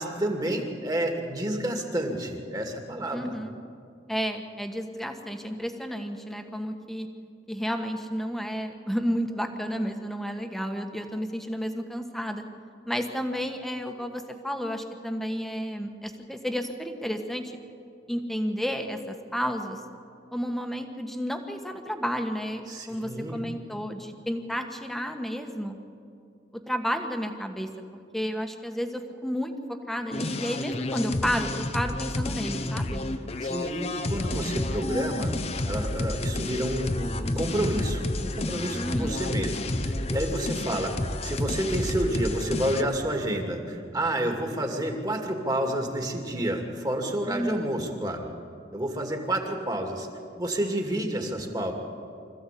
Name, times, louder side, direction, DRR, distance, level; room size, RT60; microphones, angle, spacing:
voice 1, 0.0-3.4 22.7-23.4 33.4-35.3 35.7-48.3 48.7-50.1 50.4-51.7, right 1 dB, 20° right, 3 dB, 2.4 m, -29 dB
voice 2, 3.1-3.6 4.1-7.1 7.5-12.4 12.9-17.5 18.1-19.8 20.3-25.8 26.5-27.7 28.1-33.0 38.7-39.2 47.3-47.7, equal, ahead, 5 dB, 1.5 m, -31 dB
sound 1, 30.1-42.8, left 2 dB, 35° left, 0.9 m, -30 dB
25.5 x 15.0 x 8.5 m, 2.5 s
head